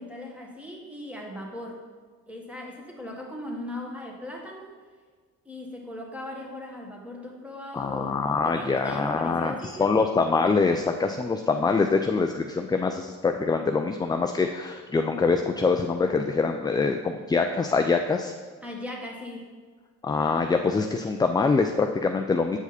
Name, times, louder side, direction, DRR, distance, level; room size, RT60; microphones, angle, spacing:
voice 1, 0.0-1.8 2.3-4.7 5.4-10.1 18.6-19.5, left 1 dB, 5° right, -1 dB, 1.5 m, -38 dB
voice 2, 7.7-18.3 20.0-22.6, left 4 dB, 15° left, 5 dB, 0.3 m, -24 dB
7.9 x 4.9 x 4.1 m, 1.6 s
cardioid pair, 90°, 30 cm